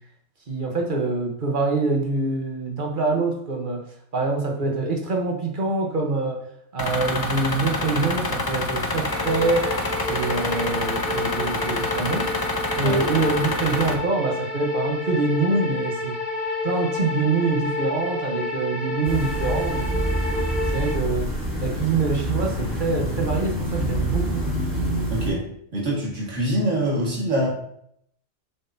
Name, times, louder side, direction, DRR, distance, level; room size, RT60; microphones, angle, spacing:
voice 1, 0.5-3.8 4.1-6.4 6.7-9.7 10.1-12.3 12.7-16.2 16.6-20.1 20.7-21.3 21.6-24.5, right 3 dB, 45° right, 1 dB, 1.3 m, -25 dB
sound 1, 6.8-13.9, left 2 dB, 25° left, 0.5 m, -27 dB
sound 2, 9.0-20.9, left 2 dB, ahead, 2.1 m, -30 dB
sound 3, 19.0-25.3, right 1 dB, 15° right, 2.1 m, -26 dB
voice 2, 25.1-27.5, right 1 dB, 75° right, -2 dB, 2.2 m, -25 dB
7.4 x 6.0 x 2.8 m, 0.70 s
omnidirectional pair, 1.2 m